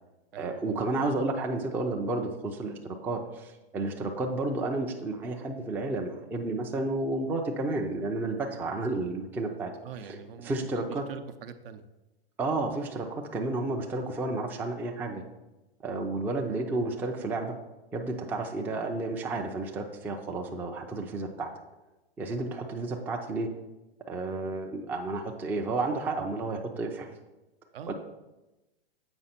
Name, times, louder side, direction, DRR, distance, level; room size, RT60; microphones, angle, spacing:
voice 1, 0.4-9.7 10.0-10.2 10.4-11.0 12.4-15.2 15.8-17.5 17.9-21.5 22.2-23.5 24.1-27.1 27.9-28.0, right 2 dB, 5° right, 2 dB, 0.4 m, -31 dB
voice 2, 9.8-11.8 27.7-27.9, right 7 dB, 65° right, 9 dB, 0.7 m, -43 dB
7.8 x 5.1 x 4.2 m, 1.0 s
hypercardioid pair, 125°, 31 cm